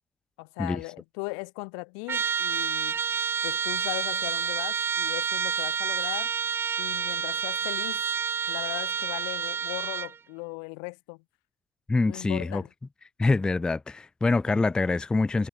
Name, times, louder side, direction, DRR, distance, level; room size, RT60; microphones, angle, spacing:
voice 1, 0.4-3.0 3.4-6.3 6.8-8.0 8.5-11.2 12.1-12.7, left 40 dB or more, 90° left, 1.9 m, -38 dB
Trumpet, 2.1-10.2, right 6 dB, 25° right, 0.7 m, -29 dB
voice 2, 11.9-12.6 13.2-15.5, left 3 dB, 10° left, 0.3 m, -25 dB
cardioid pair, 150°, 10 cm